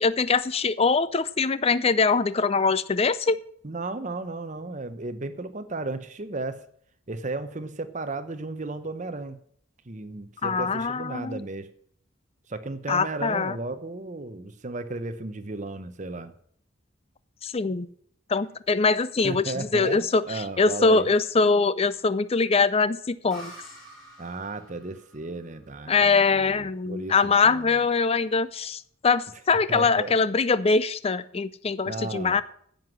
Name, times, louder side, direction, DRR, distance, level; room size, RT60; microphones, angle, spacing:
voice 1, 0.0-3.4 10.4-11.4 12.9-13.6 17.4-17.9 18.3-23.5 25.9-32.4, left 4 dB, 30° left, 16 dB, 0.5 m, -23 dB
voice 2, 3.6-6.6 7.1-9.4 9.9-11.7 12.5-16.3 19.2-21.1 24.2-27.8 29.7-30.1 31.9-32.4, right 2 dB, 35° right, 11 dB, 0.9 m, -34 dB
sound 1, 23.3-26.8, right 1 dB, ahead, 5.3 m, -48 dB
10.5 x 7.9 x 7.4 m, 0.63 s
head